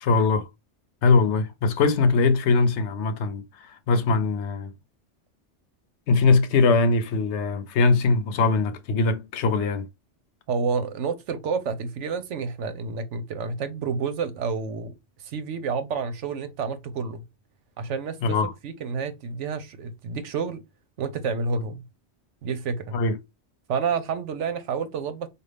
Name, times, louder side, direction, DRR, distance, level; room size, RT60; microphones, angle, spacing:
voice 1, 0.0-0.5 1.0-4.7 6.1-9.9 18.2-18.5 22.9-23.2, left 4 dB, 75° left, 0.9 m, -21 dB
voice 2, 10.5-14.9 15.2-17.2 17.8-18.4 18.6-20.6 21.0-21.8 22.4-23.0 23.7-25.3, right 5 dB, 80° right, 1.0 m, -29 dB
5.1 x 2.4 x 3.3 m
omnidirectional pair, 1.2 m